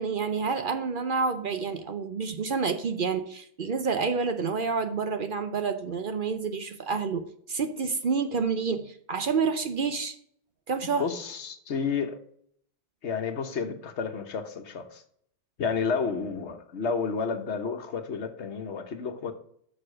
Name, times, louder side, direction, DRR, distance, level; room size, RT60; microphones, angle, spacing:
voice 1, 0.0-10.2 10.7-11.1, right 5 dB, 55° right, 9 dB, 0.8 m, -29 dB
voice 2, 11.0-12.2 13.0-15.0 15.6-19.3, left 5 dB, 75° left, 8 dB, 1.3 m, -31 dB
6.6 x 5.7 x 6.4 m, 0.65 s
omnidirectional pair, 1.2 m